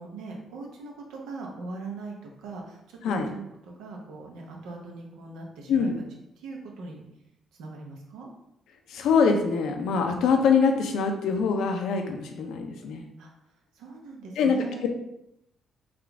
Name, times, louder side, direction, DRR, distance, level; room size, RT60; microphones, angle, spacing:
voice 1, 0.0-5.9 6.4-7.0 7.6-8.3 13.2-13.3 13.7-14.9, right 3 dB, 90° right, 0 dB, 0.8 m, -40 dB
voice 2, 8.9-13.1 14.4-14.6, left 5 dB, 80° left, 4 dB, 0.5 m, -24 dB
3.7 x 2.4 x 3.4 m, 0.82 s
cardioid pair, 90°, 0 cm